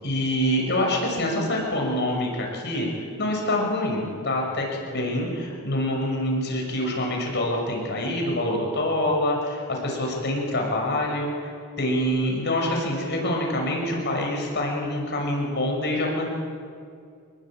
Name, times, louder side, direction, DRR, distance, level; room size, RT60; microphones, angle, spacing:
voice 1, 0.0-2.9 3.2-11.5 11.8-16.3, left 1 dB, 50° left, 0 dB, 6.3 m, -26 dB
27.0 x 21.0 x 8.7 m, 2.3 s
head